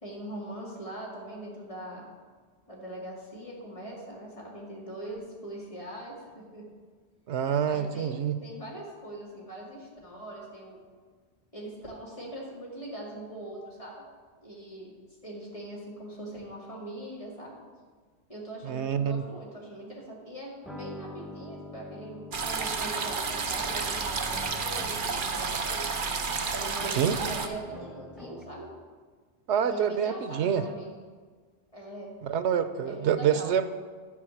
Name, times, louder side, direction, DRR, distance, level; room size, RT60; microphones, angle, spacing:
voice 1, 0.0-2.1 2.7-6.7 7.6-10.8 11.5-14.0 14.4-14.9 15.2-17.5 18.3-26.0 26.5-28.7 29.7-31.0 31.7-32.1 32.9-33.5, right 1 dB, 30° left, -4 dB, 2.4 m, -41 dB
voice 2, 7.3-8.3 18.6-19.2 26.9-27.2 29.5-30.7 32.2-33.7, right 8 dB, 90° right, 12 dB, 0.9 m, -27 dB
sound 1, 20.6-28.7, equal, ahead, 0.4 m, -45 dB
sound 2, 22.3-27.5, right 5 dB, 50° right, 0.9 m, -31 dB
11.0 x 4.8 x 7.1 m, 1.5 s
omnidirectional pair, 1.1 m